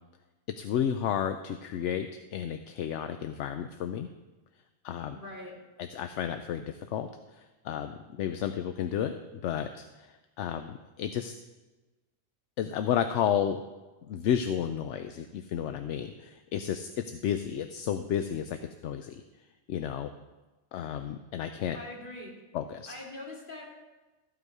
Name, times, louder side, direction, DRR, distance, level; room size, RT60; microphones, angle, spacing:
voice 1, 0.6-4.1 4.8-5.2 5.9-11.3 12.6-13.6 14.1-19.2 19.7-20.1 20.7-21.8 22.5-22.9, left 9 dB, 70° left, 8 dB, 0.8 m, -32 dB
voice 2, 5.1-5.5 21.7-22.3 22.9-23.6, left 2 dB, 40° left, -3 dB, 2.8 m, -42 dB
14.0 x 7.9 x 4.8 m, 1.2 s
omnidirectional pair, 1.4 m